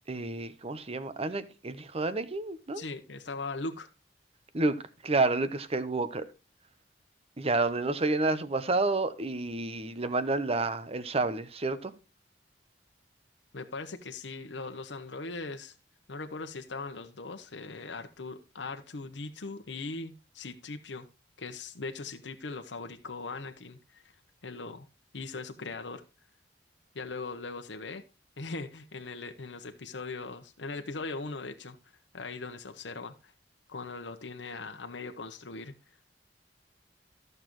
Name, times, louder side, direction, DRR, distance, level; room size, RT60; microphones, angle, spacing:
voice 1, 0.1-2.8 4.5-4.8 5.0-6.3 7.4-11.9, right 3 dB, 35° right, 0.9 m, -29 dB
voice 2, 2.7-3.9 13.5-15.7 16.1-21.1 21.4-24.1 24.4-24.9 25.1-26.0 26.9-28.0 28.4-31.8 32.1-33.3 33.7-35.8, left 3 dB, 85° left, 0.9 m, -40 dB
14.0 x 6.7 x 3.1 m
head